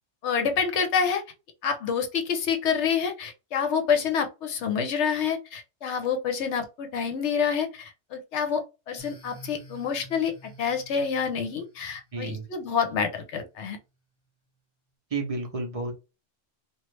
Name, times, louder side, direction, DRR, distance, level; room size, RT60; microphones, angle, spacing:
voice 1, 0.2-1.2 1.6-13.8, left 6 dB, 65° left, 0.9 m, -27 dB
sound 1, 9.0-13.5, right 2 dB, 20° left, 0.8 m, -51 dB
voice 2, 12.1-12.5 15.1-15.9, right 3 dB, 35° right, 0.6 m, -31 dB
2.9 x 2.4 x 3.2 m
omnidirectional pair, 1.3 m